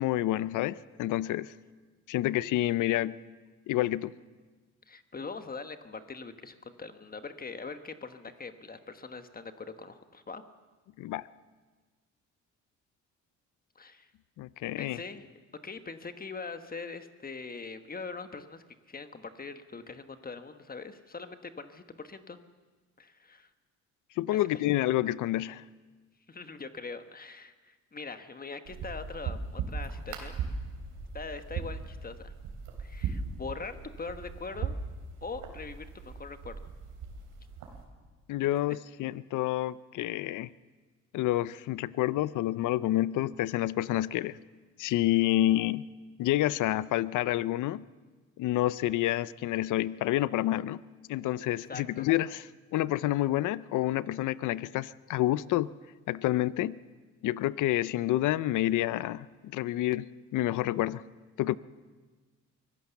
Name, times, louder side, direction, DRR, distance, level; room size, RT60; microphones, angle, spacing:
voice 1, 0.0-1.5 2.1-3.2 3.7-4.1 11.0-11.2 14.4-15.0 24.2-25.6 38.3-40.5 41.1-44.4 44.8-45.9 46.2-47.9 48.4-50.8 51.1-52.4 52.7-55.7 56.1-56.8 57.2-61.0 61.4-61.6, left 15 dB, 80° left, 18 dB, 0.6 m, -28 dB
voice 2, 4.9-10.4 13.7-14.1 14.8-15.3 15.6-22.4 23.0-23.5 24.3-24.5 26.3-30.4 31.1-32.3 32.8-34.8 35.2-36.6 38.7-38.8 51.7-52.1, left 4 dB, 30° left, 9 dB, 1.3 m, -42 dB
sound 1, 28.6-37.8, right 5 dB, 85° right, 3.6 m, -38 dB
24.0 x 16.0 x 7.0 m, 1.4 s
cardioid pair, 90°, 30 cm